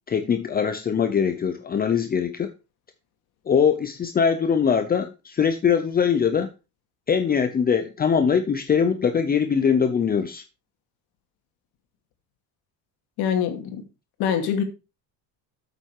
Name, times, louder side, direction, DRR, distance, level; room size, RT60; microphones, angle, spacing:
voice 1, 0.1-2.5 3.5-6.5 7.1-10.4, left 7 dB, 25° left, 0.7 m, -22 dB
voice 2, 13.2-13.8 14.2-14.6, left 8 dB, 90° left, 2.5 m, -24 dB
8.3 x 8.0 x 4.8 m
cardioid pair, 145°, 37 cm